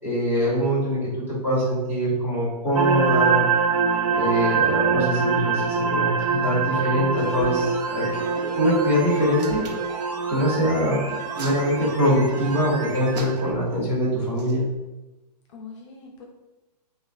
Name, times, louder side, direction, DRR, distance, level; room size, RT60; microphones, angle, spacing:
voice 1, 0.0-3.4 4.1-9.6 10.3-11.1 11.4-14.7, equal, 10° right, -10 dB, 1.4 m, -23 dB
sound 1, 2.8-13.5, right 5 dB, 50° right, 0.4 m, -25 dB
sound 2, 7.1-13.2 13.5-13.6, right 2 dB, 35° right, 0.8 m, -38 dB
Hands, 9.2-9.9 11.0-12.2 13.1-13.7 14.3-14.5, right 5 dB, 75° right, 0.8 m, -40 dB
voice 2, 11.0-11.3 15.5-16.2, left 4 dB, 45° left, -1 dB, 0.6 m, -43 dB
5.4 x 2.4 x 2.4 m, 1.0 s
hypercardioid pair, 165°, 21 cm